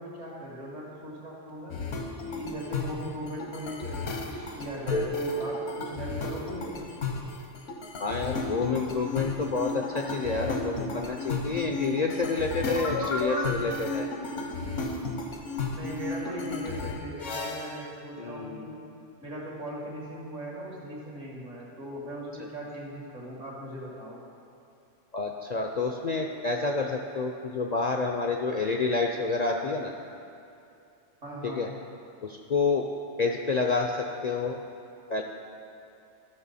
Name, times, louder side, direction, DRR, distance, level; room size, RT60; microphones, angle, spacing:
voice 1, 0.0-1.8 2.3-6.9 15.7-18.8 19.2-24.2 31.2-31.7, equal, 80° right, -4 dB, 2.4 m, -39 dB
sound 1, 1.7-17.8, left 2 dB, 80° left, 1.4 m, -33 dB
voice 2, 8.0-14.1 18.2-18.7 25.1-29.9 31.4-31.7 32.2-32.9 33.2-34.6 35.1-35.2, left 4 dB, 55° left, 2 dB, 0.5 m, -29 dB
13.0 x 6.4 x 4.1 m, 2.7 s
omnidirectional pair, 1.2 m